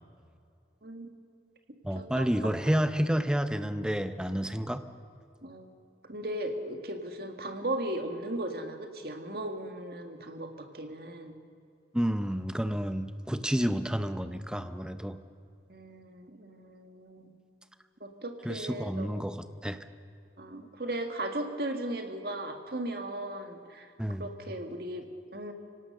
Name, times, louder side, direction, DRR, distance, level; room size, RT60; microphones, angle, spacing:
voice 1, 0.8-1.1 2.0-2.8 5.4-5.7 6.1-11.4 15.7-17.4 18.0-19.2 20.4-23.9 24.2-25.0 25.3-25.5, right 1 dB, 60° right, 5 dB, 1.9 m, -37 dB
voice 2, 1.8-4.8 11.9-15.2 18.4-19.8 24.0-24.3, equal, 5° right, 10 dB, 0.7 m, -30 dB
25.0 x 17.5 x 6.6 m, 2.5 s
head